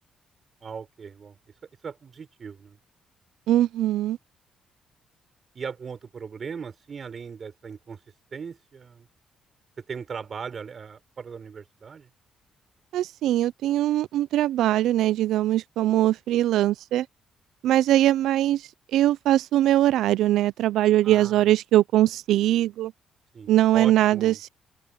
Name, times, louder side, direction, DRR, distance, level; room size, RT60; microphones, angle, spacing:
voice 1, 0.6-1.4 1.8-2.8 5.5-8.0 8.3-9.1 9.8-12.1 21.0-21.5 23.3-24.4, right 6 dB, 45° right, 4.1 m, -38 dB
voice 2, 3.5-4.2 12.9-17.1 17.6-18.6 18.9-22.9 23.5-24.5, right 13 dB, 85° right, 0.4 m, -21 dB
open air
cardioid pair, 90°, 0 cm